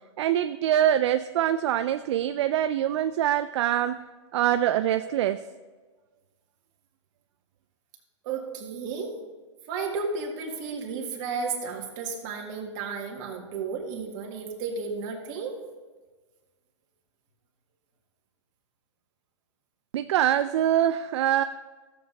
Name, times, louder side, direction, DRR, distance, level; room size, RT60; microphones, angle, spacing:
voice 1, 0.2-4.0 4.3-5.4 19.9-21.4, right 11 dB, 65° right, 10 dB, 0.4 m, -24 dB
voice 2, 8.2-9.1 9.7-15.5, right 5 dB, 40° right, 0 dB, 2.0 m, -33 dB
14.0 x 7.6 x 4.0 m, 1.3 s
hypercardioid pair, 150°, 16 cm